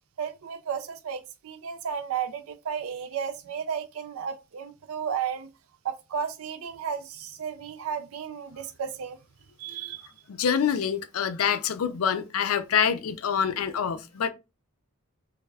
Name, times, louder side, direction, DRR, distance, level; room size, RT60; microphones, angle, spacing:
voice 1, 0.2-5.5 5.8-9.2 9.6-10.1, right 7 dB, 75° right, 0.4 m, -33 dB
voice 2, 10.3-14.3, left 7 dB, 80° left, 0.4 m, -26 dB
3.4 x 2.3 x 3.2 m
head